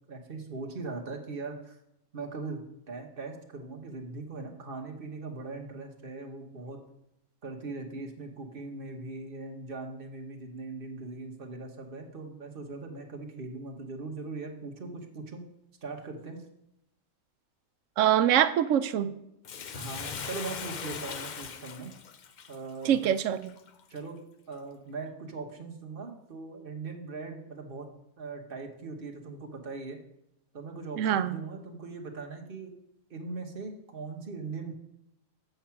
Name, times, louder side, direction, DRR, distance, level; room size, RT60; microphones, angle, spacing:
voice 1, 0.1-1.8 2.1-6.8 7.4-15.4 15.8-16.4 19.7-21.9 22.5-23.0 23.9-24.2 24.5-27.9 28.2-30.0 30.5-32.7 33.1-34.7, right 3 dB, 45° right, 2 dB, 1.3 m, -40 dB
voice 2, 18.0-19.1 22.8-23.5 31.0-31.4, right 10 dB, 75° right, 12 dB, 0.9 m, -24 dB
Bathtub (filling or washing), 19.4-24.0 24.5-24.6, left 7 dB, 55° left, 0.5 m, -40 dB
8.0 x 5.8 x 5.8 m, 0.82 s
omnidirectional pair, 1.3 m